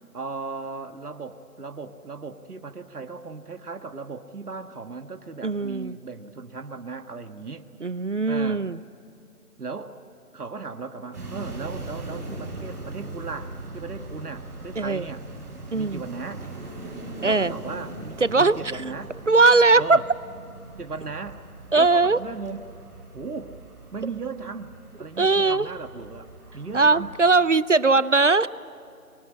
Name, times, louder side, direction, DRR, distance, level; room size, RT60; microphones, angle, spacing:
voice 1, 0.1-7.7 8.3-8.6 9.6-10.0 10.3-15.2 15.7-16.4 17.2-19.1 19.8-20.0 20.8-21.4 21.7-22.6 23.1-23.6 23.9-27.1 27.9-28.0, right 4 dB, 80° right, 6 dB, 1.8 m, -36 dB
voice 2, 5.4-5.9 7.8-8.8 14.8-15.0 15.7-16.0 17.2-17.5 18.2-18.6 19.3-20.0 21.7-22.2 25.2-25.7 26.7-28.5, right 3 dB, 55° right, 18 dB, 0.6 m, -19 dB
sound 1, 11.1-27.4, right 2 dB, 10° right, 2.1 m, -40 dB
26.0 x 23.0 x 8.7 m, 2.7 s
figure-of-eight pair, 175°, 45 cm